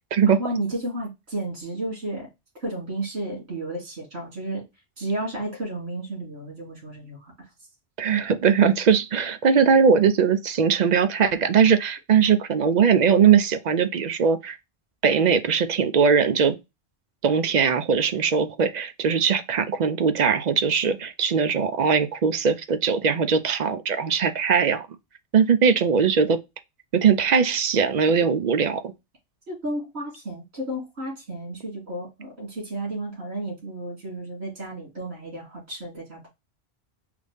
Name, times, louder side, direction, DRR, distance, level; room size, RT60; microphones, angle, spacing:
voice 1, 0.3-2.3 2.6-4.6 5.0-7.3 29.5-36.3, right 1 dB, 80° right, 3.1 m, -32 dB
voice 2, 8.0-14.6 15.0-16.6 17.2-24.9 25.3-26.4 26.9-28.9, right 6 dB, 55° right, 0.5 m, -20 dB
5.0 x 2.7 x 3.4 m
omnidirectional pair, 1.1 m